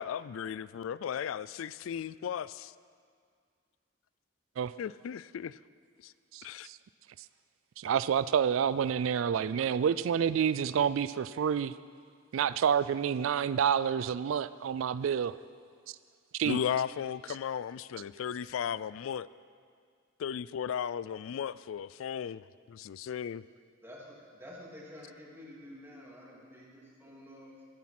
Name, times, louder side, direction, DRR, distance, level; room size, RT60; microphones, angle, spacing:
voice 1, 0.0-2.7 4.8-5.6 6.0-6.1 6.4-6.7 16.4-19.3 20.2-22.4 22.7-23.4, left 8 dB, 90° left, 18 dB, 0.3 m, -35 dB
voice 2, 6.3-6.8 7.8-11.7 12.3-15.4 16.4-16.6, right 8 dB, 85° right, 15 dB, 0.3 m, -28 dB
voice 3, 23.8-27.6, left 1 dB, 15° right, -4 dB, 3.0 m, -50 dB
14.5 x 13.5 x 6.0 m, 2.1 s
head